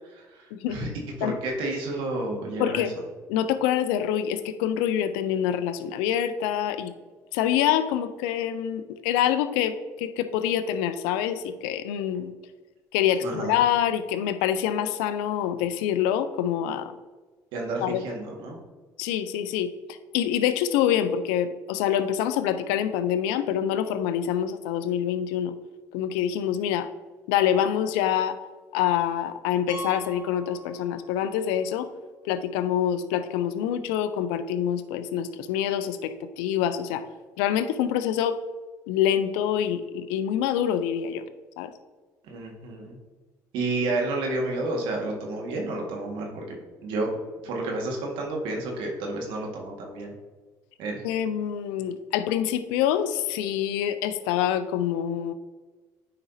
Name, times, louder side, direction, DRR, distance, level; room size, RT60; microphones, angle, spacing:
voice 1, 0.3-0.9 1.2-2.8 13.2-13.5 17.5-18.6 42.2-43.0 43.5-46.6 46.8-47.1 47.4-50.1 50.8-51.0, right 2 dB, 70° right, 0 dB, 1.7 m, -30 dB
voice 2, 2.6-2.9 3.3-6.9 7.3-12.3 12.9-16.9 17.8-18.0 19.0-25.6 25.9-26.9 27.3-28.4 28.7-31.9 32.2-37.0 37.4-38.4 38.9-41.2 41.6-41.7 51.0-55.3, left 10 dB, 80° left, 12 dB, 0.5 m, -26 dB
Piano, 29.7-31.3 31.6-31.7 32.3-32.4 32.6-32.7 34.8-34.9, right 3 dB, 40° right, 1.6 m, -42 dB
9.6 x 5.0 x 2.7 m, 1.3 s
hypercardioid pair, 70°, 9 cm